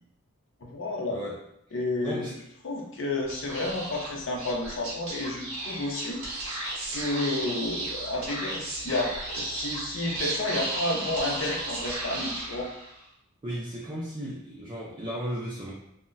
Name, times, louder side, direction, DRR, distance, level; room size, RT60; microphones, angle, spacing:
voice 1, 0.6-1.2 1.7-2.3 2.6-6.4 6.9-12.7, left 2 dB, 65° left, -1 dB, 0.6 m, -31 dB
voice 2, 2.0-2.3 13.4-15.7, equal, 25° right, -6 dB, 0.4 m, -35 dB
Speech / Whispering, 3.2-13.0, right 2 dB, 80° right, 0.8 m, -34 dB
2.2 x 2.1 x 3.8 m, 0.77 s
head